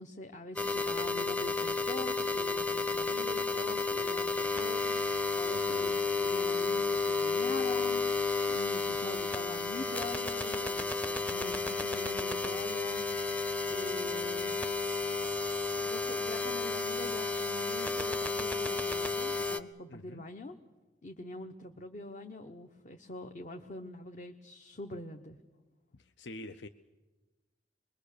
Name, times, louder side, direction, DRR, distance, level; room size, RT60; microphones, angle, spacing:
voice 1, 0.0-13.0 13.7-14.6 15.7-20.6 21.0-25.4, left 2 dB, 45° left, 4 dB, 0.9 m, -44 dB
sound 1, 0.6-19.6, left 3 dB, 10° left, 0.7 m, -32 dB
voice 2, 5.5-5.9 19.9-20.2 26.0-26.7, left 2 dB, 75° left, 9 dB, 0.7 m, -46 dB
25.0 x 22.0 x 6.6 m, 1.2 s
head